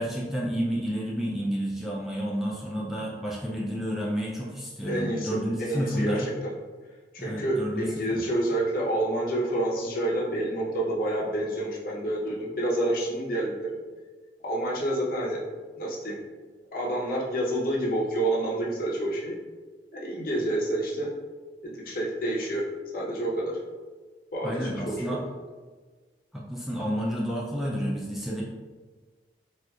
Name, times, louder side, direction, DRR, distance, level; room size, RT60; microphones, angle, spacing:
voice 1, 0.0-6.3 7.2-8.2 24.4-25.2 26.3-28.4, equal, ahead, -5 dB, 0.3 m, -30 dB
voice 2, 4.8-6.5 7.1-13.8 14.4-15.4 15.8-16.2 16.7-19.4 19.9-21.1 21.6-22.7 22.9-23.6 24.3-25.2, right 1 dB, 55° left, -4 dB, 0.7 m, -28 dB
4.3 x 2.4 x 2.3 m, 1.4 s
head